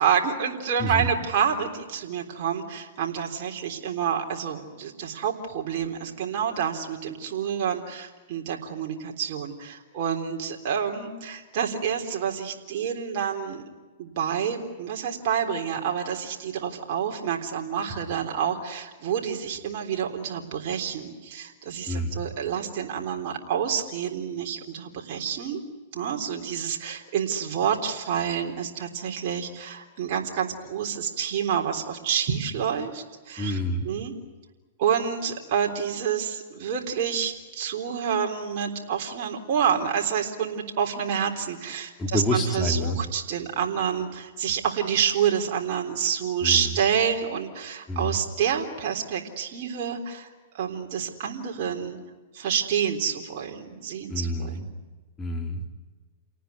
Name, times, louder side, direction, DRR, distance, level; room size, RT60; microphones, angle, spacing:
voice 1, 0.0-13.6 14.0-25.6 25.9-33.6 33.8-34.1 34.8-52.0 52.3-54.7, right 8 dB, 50° right, 1 dB, 3.7 m, -28 dB
voice 2, 0.8-1.1 21.9-22.2 33.4-33.9 42.0-43.0 46.4-46.7 47.9-48.2 54.1-54.7 55.2-55.7, equal, 15° left, 2 dB, 3.6 m, -28 dB
29.5 x 18.5 x 9.6 m, 1.3 s
hypercardioid pair, 130°, 0 cm